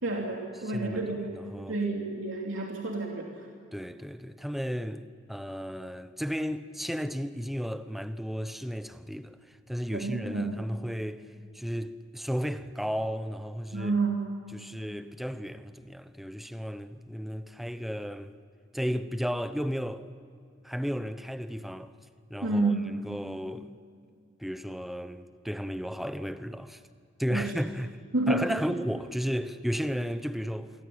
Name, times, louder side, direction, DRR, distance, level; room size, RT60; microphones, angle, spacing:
voice 1, 0.0-1.2 1.7-3.5 9.9-10.6 13.7-14.2 22.4-23.0 27.3-27.5 28.1-28.5, right 2 dB, 85° right, 3.2 m, -29 dB
voice 2, 0.7-1.8 3.7-5.0 5.3-11.2 11.5-13.9 14.5-18.3 18.7-20.1 20.6-21.9 22.3-23.8 24.4-26.8 27.2-28.0 28.3-30.7, equal, ahead, 0.9 m, -34 dB
29.0 x 23.5 x 8.8 m
head